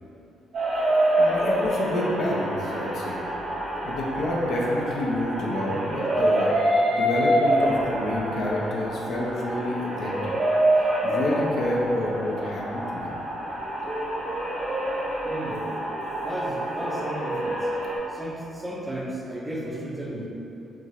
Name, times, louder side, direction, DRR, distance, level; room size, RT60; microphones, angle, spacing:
sound 1, 0.5-18.0, right 1 dB, 60° right, 1.5 m, -26 dB
voice 1, 1.2-3.2 3.8-6.5 6.9-10.3 10.7-13.2, left 1 dB, 70° left, -4 dB, 0.8 m, -28 dB
voice 2, 15.2-15.7 16.2-17.7 18.1-20.3, right 1 dB, 15° right, -3 dB, 0.7 m, -34 dB
5.9 x 2.5 x 3.1 m, 2.9 s
cardioid pair, 90°, 0 cm